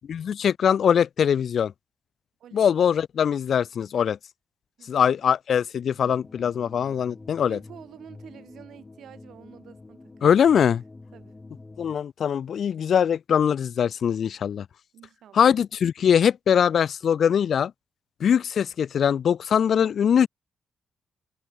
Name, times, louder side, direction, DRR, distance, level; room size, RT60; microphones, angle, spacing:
voice 1, 0.1-1.7 2.5-4.2 4.9-7.6 10.2-10.8 11.8-14.7 15.3-17.7 18.2-20.3, left 8 dB, 70° left, 0.3 m, -22 dB
voice 2, 4.8-5.2 5.8-6.2 7.5-10.6 11.1-11.4 14.9-15.5, right 10 dB, 85° right, 3.7 m, -49 dB
sound 1, 6.0-11.9, left 3 dB, 25° left, 1.8 m, -47 dB
cardioid pair, 75°, 0 cm